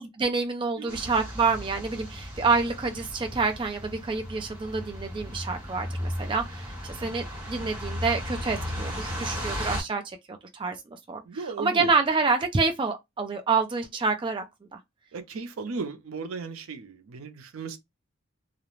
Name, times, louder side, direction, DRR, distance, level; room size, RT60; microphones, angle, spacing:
voice 1, 0.2-11.2 11.6-14.4 14.7-14.8, right 4 dB, 25° right, 0.3 m, -27 dB
voice 2, 0.8-1.2 11.2-11.9 15.1-17.8, right 4 dB, 80° right, 0.5 m, -36 dB
sound 1, 0.9-9.8, equal, 5° right, 0.9 m, -35 dB
2.3 x 2.0 x 2.9 m
head